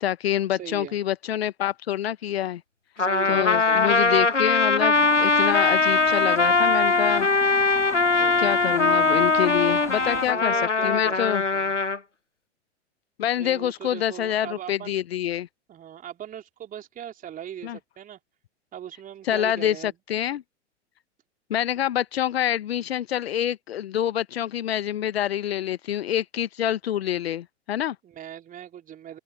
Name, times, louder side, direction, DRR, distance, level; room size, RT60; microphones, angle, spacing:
voice 1, 0.0-2.6 3.3-7.3 8.4-10.6 10.8-11.4 13.2-15.5 17.6-17.8 19.3-20.4 21.5-28.0, left 11 dB, 60° left, 1.1 m, -26 dB
voice 2, 0.6-1.0 3.0-4.2 8.1-8.6 9.7-11.2 11.5-11.8 13.3-15.0 15.7-18.2 18.7-19.9 28.0-29.2, right 10 dB, 25° right, 3.6 m, -40 dB
Trumpet, 3.0-12.0, left 3 dB, 90° left, 1.2 m, -21 dB
sound 1, 4.9-10.3, left 3 dB, 10° left, 2.1 m, -40 dB
open air
figure-of-eight pair, 95°, 35 cm